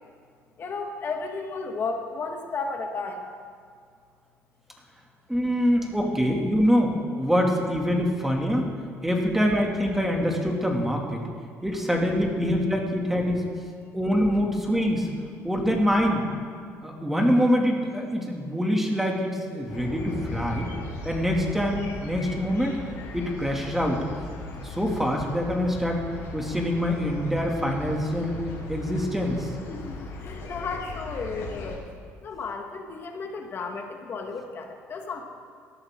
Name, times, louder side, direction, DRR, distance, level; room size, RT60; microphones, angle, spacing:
voice 1, 0.6-3.3 29.7-30.0 30.2-31.8 32.2-35.2, left 4 dB, 45° left, 3 dB, 1.6 m, -33 dB
voice 2, 5.3-8.7 9.0-11.2 11.6-13.5 13.9-15.1 15.4-16.2 16.8-20.7 21.0-22.8 23.1-24.0 24.6-26.0 26.3-28.4 28.7-29.5, equal, 5° right, 0 dB, 2.4 m, -25 dB
sound 1, 19.7-31.8, left 3 dB, 60° left, 4.3 m, -38 dB
19.5 x 13.5 x 3.8 m, 2.2 s
cardioid pair, 110°, 5 cm